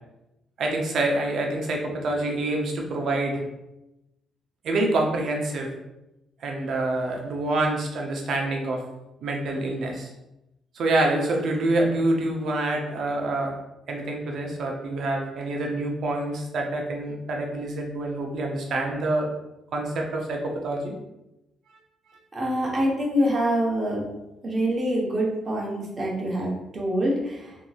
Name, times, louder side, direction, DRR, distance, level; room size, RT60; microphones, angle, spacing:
voice 1, 0.6-3.4 4.6-5.7 6.4-8.8 9.2-10.1 10.7-13.6 13.9-19.3 19.7-20.9, right 2 dB, 65° right, 1 dB, 0.6 m, -26 dB
voice 2, 22.3-24.1 24.4-27.5, equal, 35° right, -2 dB, 0.9 m, -25 dB
2.9 x 2.7 x 2.3 m, 0.93 s
cardioid pair, 90°, 0 cm